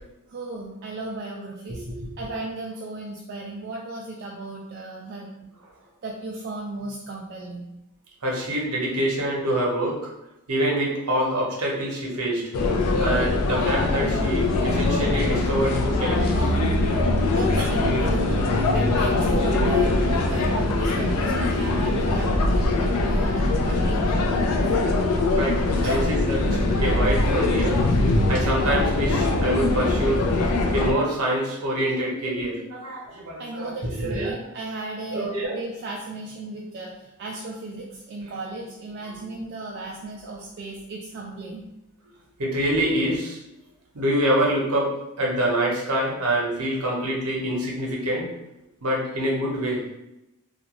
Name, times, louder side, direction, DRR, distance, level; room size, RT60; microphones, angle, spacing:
voice 1, 0.3-1.8 2.2-5.5 6.0-7.7 17.3-24.7 25.8-26.0 33.4-41.7, right 2 dB, 50° right, -2 dB, 0.3 m, -35 dB
voice 2, 1.7-2.3 8.2-10.0 10.5-12.5 13.0-16.5 17.0-17.1 17.6-17.7 25.3-27.8 28.1-34.4 35.1-35.6 39.0-39.1 42.4-43.4 43.9-48.3 48.8-49.8, right 1 dB, 75° right, -3 dB, 0.8 m, -26 dB
sound 1, 12.5-30.9, left 2 dB, 85° left, 0.4 m, -22 dB
2.5 x 2.2 x 2.9 m, 0.91 s
head